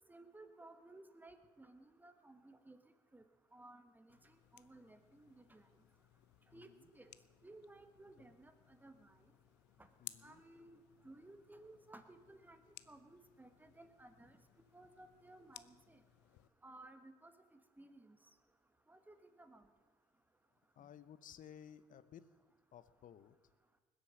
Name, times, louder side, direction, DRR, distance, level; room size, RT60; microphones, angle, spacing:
voice 1, 0.1-2.8 3.1-3.2 3.5-5.6 6.5-7.1 7.4-9.2 10.2-10.8 11.0-14.4 14.7-16.0 16.6-18.2 18.9-19.6, right 2 dB, 10° right, 8 dB, 1.4 m, -58 dB
sound 1, 4.1-16.5, left 16 dB, 85° left, 0.6 m, -61 dB
voice 2, 6.5-6.9 8.2-8.3 10.0-10.4 20.7-22.3 22.7-23.3, left 9 dB, 50° left, 15 dB, 0.8 m, -57 dB
20.0 x 8.2 x 7.7 m, 1.4 s
cardioid pair, 110°, 17 cm